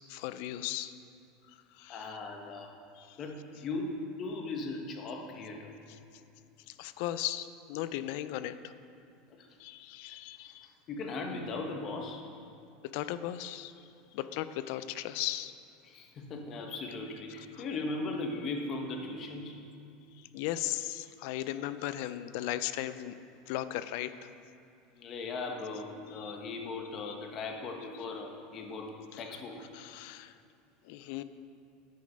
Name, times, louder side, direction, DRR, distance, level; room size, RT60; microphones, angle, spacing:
voice 1, 0.1-0.9 1.8-2.1 3.0-3.2 6.7-8.7 9.6-10.7 12.9-13.7 14.1-15.5 17.6-17.7 20.3-23.1 23.5-24.3 26.1-26.3 27.1-27.2 29.1-29.2 29.7-30.3 30.8-31.2, left 13 dB, 65° left, 13 dB, 0.4 m, -37 dB
voice 2, 1.9-2.7 3.2-5.8 9.4-9.5 10.4-12.2 15.8-19.5 24.9-28.9 29.2-29.6, left 3 dB, 40° left, 3 dB, 1.2 m, -38 dB
10.5 x 5.2 x 5.2 m, 2.6 s
supercardioid pair, 120°, 0 cm